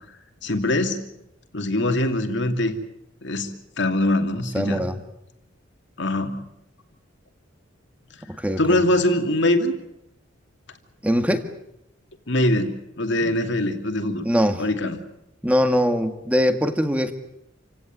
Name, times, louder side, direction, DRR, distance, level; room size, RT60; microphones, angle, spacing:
voice 1, 0.4-1.1 1.5-2.7 3.2-4.9 6.0-6.5 8.6-9.7 12.3-14.3 14.6-15.0, left 1 dB, 65° left, 6 dB, 2.6 m, -23 dB
voice 2, 4.5-5.0 8.3-8.8 11.0-11.5 13.2-13.3 14.2-14.6 15.4-17.1, equal, 5° right, 8 dB, 1.8 m, -22 dB
28.0 x 16.5 x 9.4 m, 0.81 s
head